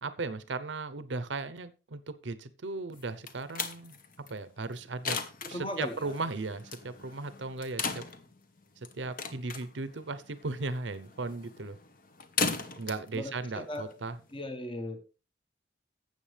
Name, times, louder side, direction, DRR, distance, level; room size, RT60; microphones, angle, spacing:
voice 1, 0.0-4.0 4.3-5.2 5.5-8.0 8.9-11.8 12.8-14.2, right 3 dB, 85° right, 14 dB, 0.8 m, -36 dB
sound 1, 2.9-14.4, left 4 dB, 50° left, 1.2 m, -38 dB
voice 2, 5.4-6.1 13.1-13.9 14.3-15.1, left 1 dB, 30° left, 7 dB, 1.2 m, -38 dB
13.0 x 8.0 x 3.4 m, 0.31 s
head